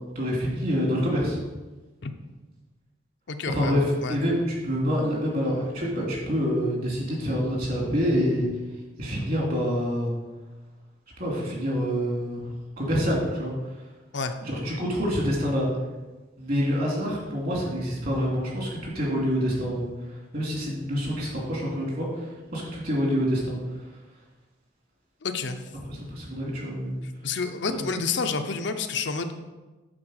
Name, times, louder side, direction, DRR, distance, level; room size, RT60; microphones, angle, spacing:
voice 1, 0.1-1.4 3.5-8.5 9.0-10.1 11.2-12.4 12.8-13.5 14.4-15.7 16.4-19.9 20.3-23.6 25.9-27.0 27.7-27.8, equal, 45° right, -3 dB, 2.7 m, -26 dB
voice 2, 3.3-4.2 14.1-14.3 25.2-25.6 27.2-29.3, left 4 dB, 60° left, 7 dB, 0.6 m, -29 dB
8.7 x 4.4 x 6.4 m, 1.2 s
head